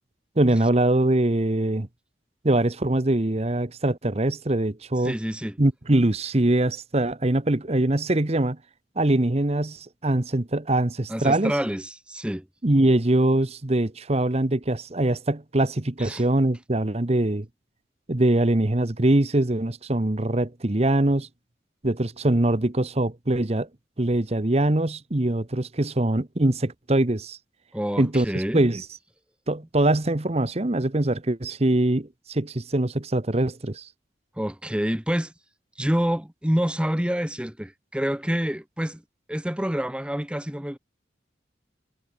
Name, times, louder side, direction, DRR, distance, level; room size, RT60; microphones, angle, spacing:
voice 1, 0.4-1.9 2.4-5.1 5.6-8.6 9.0-11.5 12.6-17.5 18.1-21.3 21.8-23.7 24.0-27.4 28.0-28.8 29.5-33.9, right 1 dB, 35° right, 1.0 m, -23 dB
voice 2, 5.0-5.6 11.1-12.5 16.0-16.2 27.7-28.6 34.4-35.3 35.8-39.0 39.3-40.8, equal, 5° right, 1.0 m, -27 dB
head